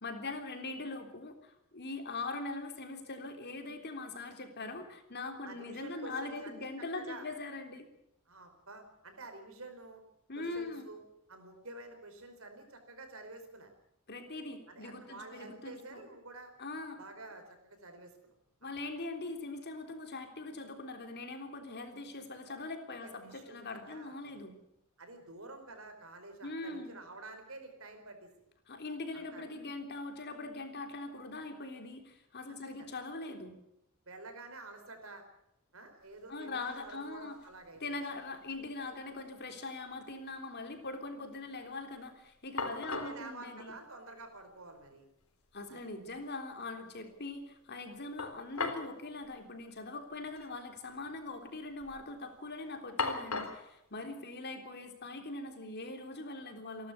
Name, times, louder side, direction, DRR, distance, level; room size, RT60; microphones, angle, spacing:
voice 1, 0.0-7.9 10.3-10.9 14.1-16.0 16.6-17.0 18.6-24.6 26.4-26.9 28.7-33.6 36.3-37.4 37.8-43.7 45.5-56.9, left 2 dB, 50° left, 5 dB, 3.6 m, -42 dB
voice 2, 5.4-7.3 8.3-10.0 10.4-11.0 11.3-13.7 14.7-16.5 17.0-18.3 23.0-24.4 25.0-28.5 29.1-29.5 32.5-32.9 34.1-35.2 35.7-37.8 42.7-45.1 45.7-45.9 54.0-54.1, right 2 dB, 70° right, 6 dB, 5.0 m, -49 dB
sound 1, 36.1-36.2 36.4-37.0 37.4-38.3 38.5-38.6 42.1-42.2 42.6-43.2 44.3-44.4 44.8-44.9 48.2-48.9 49.2-49.3 50.3-50.5 50.8-51.3 51.7-52.1 53.0-53.7, left 4 dB, 85° left, 3.6 m, -38 dB
28.5 x 12.0 x 8.5 m, 0.82 s
head